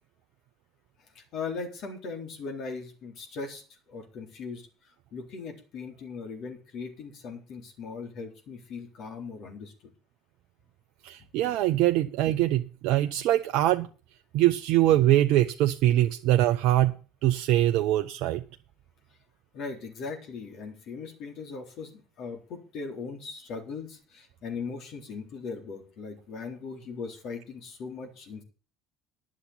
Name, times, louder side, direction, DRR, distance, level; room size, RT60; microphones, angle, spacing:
voice 1, 1.1-3.6 3.9-4.7 5.1-9.9 19.5-28.4, left 4 dB, 60° left, 2 dB, 3.9 m, -39 dB
voice 2, 11.0-13.9 14.3-16.9 17.2-18.4, right 14 dB, 70° right, 6 dB, 0.7 m, -23 dB
10.5 x 7.3 x 8.2 m, 0.37 s
hypercardioid pair, 80°, 0 cm